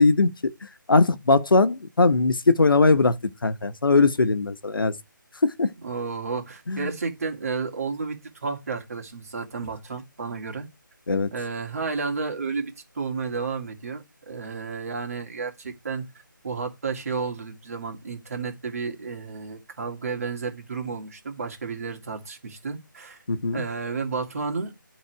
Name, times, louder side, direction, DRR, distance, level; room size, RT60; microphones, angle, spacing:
voice 1, 0.0-4.9 5.4-5.7 6.7-6.9 11.1-11.3 23.3-23.6, left 3 dB, 80° left, 1.1 m, -20 dB
voice 2, 5.8-10.7 11.3-16.1 16.4-23.2 23.5-24.7, right 4 dB, 45° right, 2.4 m, -32 dB
11.0 x 4.0 x 4.7 m
figure-of-eight pair, 170°, 11 cm